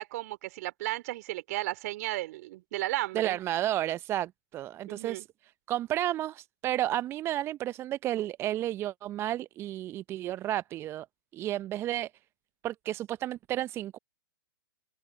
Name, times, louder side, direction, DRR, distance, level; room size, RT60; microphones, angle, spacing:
voice 1, 0.0-3.4 4.9-5.3, right 18 dB, 45° right, 3.0 m, -34 dB
voice 2, 3.1-5.3 5.7-11.1 11.3-12.1 12.6-14.0, right 13 dB, 20° right, 0.6 m, -32 dB
figure-of-eight pair, 110°, 12 cm